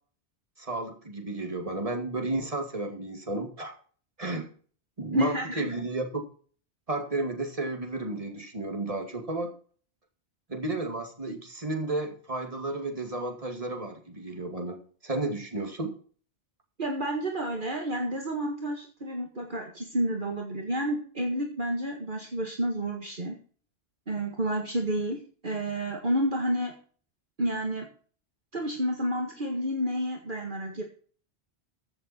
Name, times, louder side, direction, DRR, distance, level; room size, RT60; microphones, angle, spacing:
voice 1, 0.6-3.8 4.2-4.5 5.0-6.2 6.9-9.5 10.5-14.8 15.0-15.9, right 2 dB, 35° right, 3 dB, 2.4 m, -32 dB
voice 2, 5.1-5.8 16.8-23.4 24.1-26.7 27.4-27.9 28.5-30.8, equal, 50° right, 2 dB, 1.9 m, -30 dB
14.5 x 7.4 x 4.4 m, 0.43 s
omnidirectional pair, 1.1 m